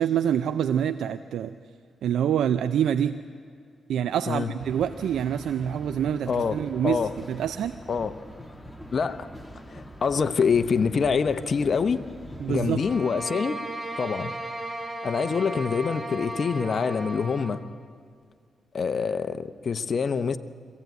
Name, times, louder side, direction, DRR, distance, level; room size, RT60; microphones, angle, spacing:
voice 1, 0.0-1.5 2.0-3.2 3.9-7.8 12.4-12.8, right 9 dB, 85° right, 0.5 m, -26 dB
sound 1, 4.6-13.0, equal, 5° left, 1.7 m, -43 dB
voice 2, 6.3-6.6 6.8-7.1 7.9-8.1 8.9-9.3 9.7-12.0 12.5-13.6 14.0-14.3 15.0-17.6 18.7-20.4, left 5 dB, 50° left, 0.9 m, -25 dB
sound 2, 12.8-17.6, right 2 dB, 15° right, 1.9 m, -35 dB
22.0 x 16.0 x 9.3 m
cardioid pair, 80°, 0 cm